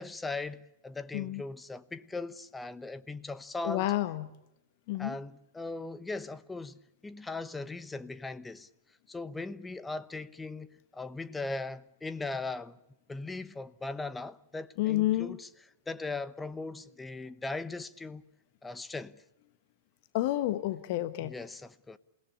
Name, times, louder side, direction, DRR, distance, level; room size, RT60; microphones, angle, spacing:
voice 1, 0.0-3.9 5.0-8.7 9.1-12.8 13.1-18.2 18.6-19.2 21.2-22.0, left 3 dB, 10° left, 0.9 m, -39 dB
voice 2, 3.6-4.3 4.9-5.1 14.8-15.4 20.1-21.3, left 15 dB, 50° left, 1.3 m, -29 dB
28.0 x 17.5 x 8.6 m
figure-of-eight pair, 105°, 0 cm